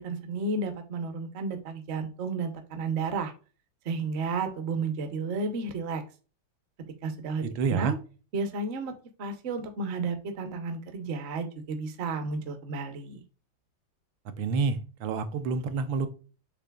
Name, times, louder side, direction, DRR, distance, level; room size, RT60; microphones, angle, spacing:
voice 1, 0.0-3.3 3.8-6.0 7.0-8.0 8.3-8.9 9.2-13.2, right 4 dB, 60° right, 7 dB, 0.7 m, -32 dB
voice 2, 7.4-7.9 14.4-16.1, right 5 dB, 85° right, 9 dB, 1.4 m, -28 dB
6.6 x 3.3 x 2.3 m, 0.36 s
omnidirectional pair, 2.1 m